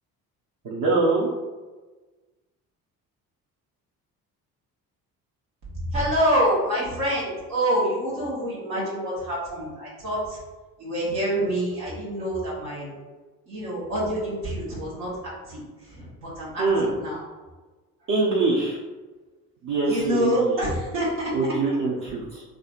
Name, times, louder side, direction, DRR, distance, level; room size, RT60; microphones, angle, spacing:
voice 1, 0.6-1.3 16.6-16.9 18.1-18.8 19.6-20.3 21.3-22.4, right 3 dB, 45° right, -6 dB, 0.7 m, -23 dB
voice 2, 5.8-10.4 10.8-12.9 13.5-15.1 15.4-15.6 15.9-17.2 19.8-21.3, equal, 75° right, -7 dB, 1.2 m, -26 dB
3.7 x 2.4 x 2.4 m, 1.2 s
hypercardioid pair, 50°, 44 cm